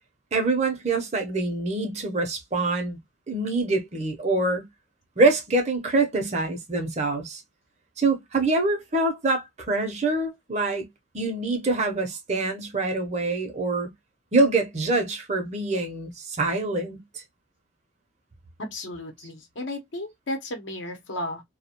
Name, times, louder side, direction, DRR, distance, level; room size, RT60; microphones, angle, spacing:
voice 1, 0.3-3.0 3.3-4.7 5.2-7.4 8.0-10.9 11.1-13.9 14.3-17.2, right 3 dB, 35° right, 0.6 m, -25 dB
voice 2, 18.6-21.4, left 1 dB, 75° left, 0.8 m, -34 dB
2.3 x 2.1 x 2.8 m
head